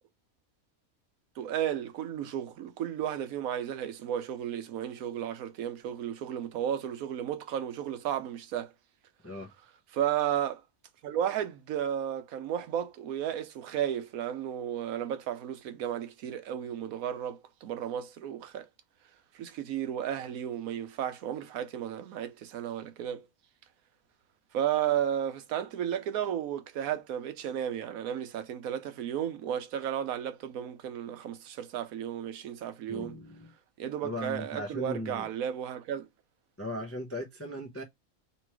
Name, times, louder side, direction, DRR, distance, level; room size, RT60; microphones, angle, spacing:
voice 1, 1.4-8.7 9.9-10.6 11.0-18.7 19.3-23.3 24.5-33.2 33.8-36.1, right 10 dB, 80° right, 1.1 m, -33 dB
voice 2, 32.9-33.5 34.0-35.3 36.6-37.8, left 1 dB, 25° left, 0.3 m, -38 dB
3.0 x 3.0 x 4.6 m
omnidirectional pair, 1.5 m